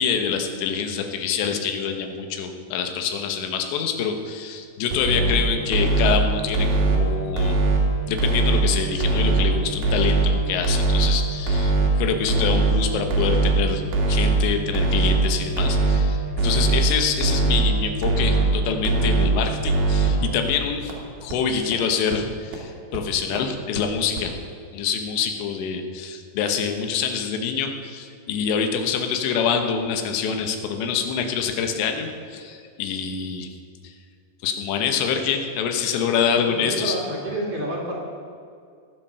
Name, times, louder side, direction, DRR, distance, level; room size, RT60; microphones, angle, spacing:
voice 1, 0.0-7.6 8.1-13.8 14.1-20.9 21.2-24.3 24.7-33.5 33.8-33.9 34.4-37.0, left 6 dB, 85° left, 5 dB, 3.4 m, -26 dB
sound 1, 4.9-5.3 5.7-6.2 6.5-7.0 7.4-7.8 8.2-8.6 9.0-9.4 9.8-10.3 10.7-11.1 11.5-11.9 12.3-12.7 13.1-13.5 13.9-14.4 14.8-15.2 15.6-16.0 16.4-16.8 17.2-17.6 18.0-18.5 18.9-19.3 19.7-20.1 20.5-20.6 20.9-21.0 21.3-21.4 21.7-21.8 22.1-22.2 22.5-22.6 22.9-23.0 23.4-23.5 23.8-23.9 24.2-24.3, right 3 dB, 70° right, 4.0 m, -20 dB
voice 2, 36.4-37.9, right 1 dB, 40° right, -3 dB, 2.6 m, -29 dB
19.5 x 7.6 x 5.6 m, 2.3 s
omnidirectional pair, 5.0 m